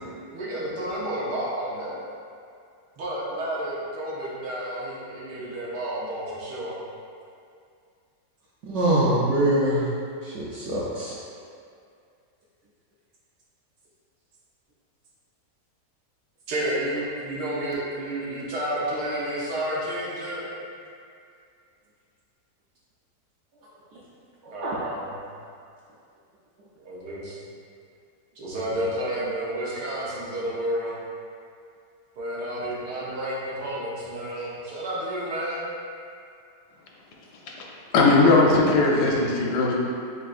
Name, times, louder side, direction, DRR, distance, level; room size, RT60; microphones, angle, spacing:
voice 1, 0.3-2.0 3.0-6.7 16.5-20.4 24.5-25.2 26.8-27.4 28.4-31.0 32.2-35.6, right 1 dB, 90° right, -6 dB, 1.5 m, -31 dB
voice 2, 8.7-9.8 10.2-11.1 24.6-24.8, right 1 dB, 70° right, -7 dB, 0.7 m, -23 dB
voice 3, 37.9-39.7, left 3 dB, 75° left, -2 dB, 1.2 m, -18 dB
6.9 x 2.5 x 2.4 m, 2.4 s
omnidirectional pair, 1.7 m